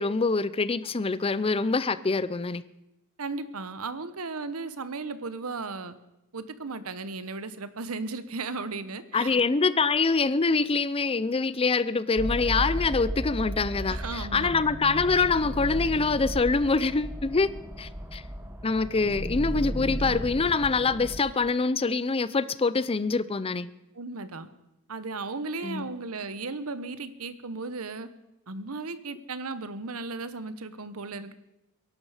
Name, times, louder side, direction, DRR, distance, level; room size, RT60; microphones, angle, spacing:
voice 1, 0.0-2.6 9.1-17.5 17.8-18.2 18.6-23.7 25.6-25.9, left 4 dB, 25° left, 0.5 m, -25 dB
voice 2, 3.2-5.9 6.3-9.4 13.9-14.6 23.9-24.5 24.9-28.1 28.5-31.3, right 3 dB, 75° right, 1.0 m, -35 dB
sound 1, 12.2-21.2, equal, 10° right, 1.1 m, -34 dB
22.5 x 11.5 x 5.0 m
head